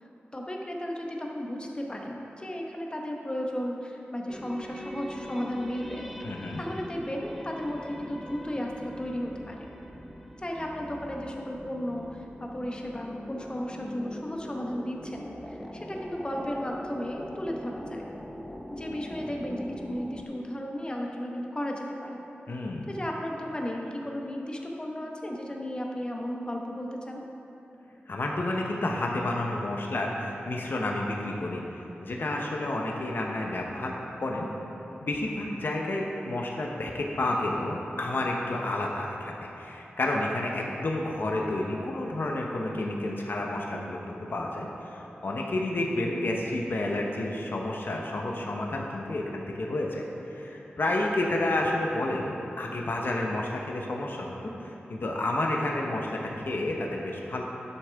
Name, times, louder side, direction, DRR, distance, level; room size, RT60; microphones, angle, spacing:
voice 1, 0.0-6.1 6.6-9.7 10.4-18.1 18.7-22.2 22.9-27.2, equal, 25° left, 0 dB, 1.2 m, -34 dB
sound 1, 4.3-20.2, equal, ahead, 0.7 m, -42 dB
voice 2, 6.2-6.6 22.5-22.9 28.1-31.6 32.0-34.5 35.0-50.0 50.3-57.4, left 2 dB, 60° left, -1 dB, 0.9 m, -30 dB
11.0 x 6.6 x 3.5 m, 3.0 s
cardioid pair, 50°, 4 cm